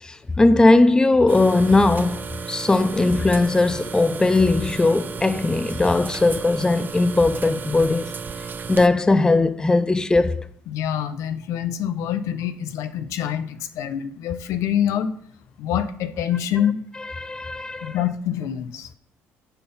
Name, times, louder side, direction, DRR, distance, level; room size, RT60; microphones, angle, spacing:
voice 1, 0.0-8.1 8.7-10.4 17.2-18.0, left 2 dB, 15° left, 0.5 m, -19 dB
sound 1, 1.3-8.9, right 5 dB, 35° right, 0.7 m, -34 dB
voice 2, 10.7-15.1 15.6-16.8 17.8-18.9, left 10 dB, 75° left, 0.9 m, -25 dB
9.1 x 4.4 x 5.6 m
cardioid pair, 90°, 5 cm